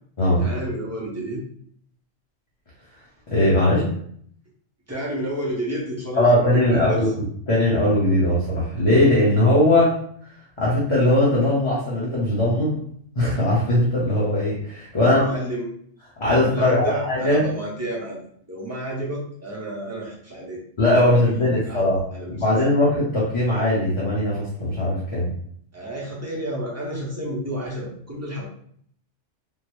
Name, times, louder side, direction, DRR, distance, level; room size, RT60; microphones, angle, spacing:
voice 1, 0.4-1.4 4.9-7.1 15.0-15.7 16.3-18.2 18.5-20.6 20.9-21.9 22.1-22.5 25.7-28.5, right 1 dB, 15° right, -4 dB, 0.6 m, -31 dB
voice 2, 3.3-3.8 6.1-7.1 7.5-9.9 10.6-12.8 13.1-15.3 16.2-17.5 20.8-22.0 22.3-25.3, left 1 dB, 30° left, -7 dB, 0.7 m, -19 dB
3.6 x 2.0 x 3.1 m, 0.63 s
omnidirectional pair, 1.3 m